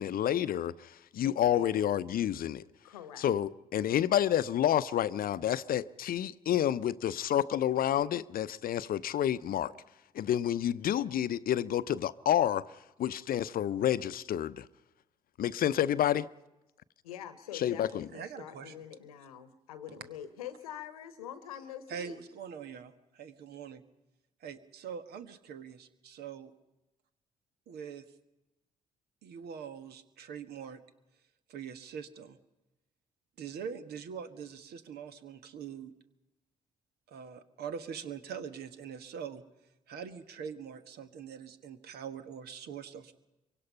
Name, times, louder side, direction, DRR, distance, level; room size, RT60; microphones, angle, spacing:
voice 1, 0.0-2.6 3.2-9.7 10.1-12.7 13.0-14.6 15.4-16.3 17.5-18.1, left 11 dB, 55° left, 0.7 m, -29 dB
voice 2, 1.2-1.8 2.8-3.3 17.0-22.2, left 10 dB, 85° left, 1.1 m, -45 dB
voice 3, 18.1-18.8 19.9-20.0 21.9-23.8 24.4-26.5 27.7-28.1 29.2-30.8 31.5-32.4 33.4-35.9 37.1-39.4 39.9-43.1, right 7 dB, 65° right, 1.5 m, -43 dB
24.0 x 23.5 x 5.6 m
hypercardioid pair, 45°, 18 cm